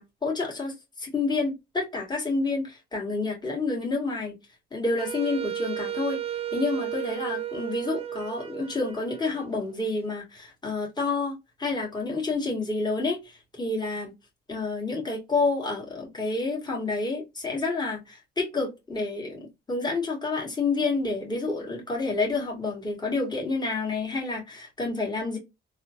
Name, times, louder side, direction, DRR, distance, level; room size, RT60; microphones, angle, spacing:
voice 1, 0.0-4.4 4.7-6.2 6.5-14.1 14.5-25.4, left 3 dB, 20° left, 1.9 m, -29 dB
Wind instrument woodwind instrument, 5.0-9.9, right 11 dB, 30° right, 0.4 m, -34 dB
3.5 x 2.8 x 2.5 m
cardioid pair, 90°, 20 cm